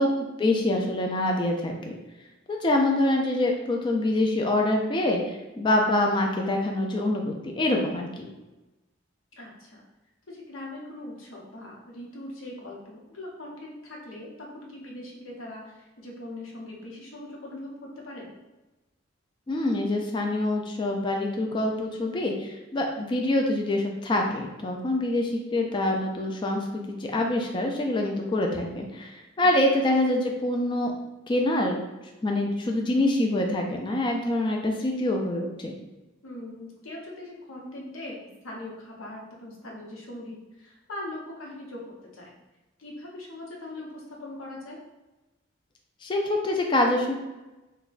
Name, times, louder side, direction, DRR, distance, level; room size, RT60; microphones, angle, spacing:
voice 1, 0.0-1.7 2.5-8.3 19.5-30.9 31.3-31.8 32.2-35.7 46.0-47.1, left 1 dB, 25° left, 1 dB, 0.3 m, -25 dB
voice 2, 9.4-9.8 10.3-18.3 29.7-29.8 36.2-42.3 42.8-44.8, left 1 dB, 90° left, -2 dB, 0.8 m, -41 dB
3.9 x 2.2 x 2.5 m, 1.1 s
head